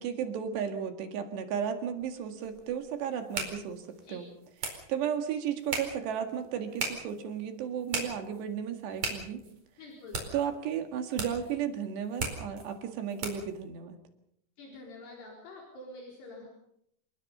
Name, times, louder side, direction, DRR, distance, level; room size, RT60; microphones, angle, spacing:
voice 1, 0.0-4.3 4.7-9.4 10.3-14.0, right 8 dB, 75° right, 6 dB, 4.1 m, -34 dB
sound 1, 2.0-13.6, right 4 dB, 40° right, 5.6 m, -40 dB
voice 2, 9.8-10.3 14.6-16.5, left 2 dB, 70° left, -2 dB, 6.3 m, -47 dB
28.0 x 20.5 x 5.6 m, 0.73 s
omnidirectional pair, 5.0 m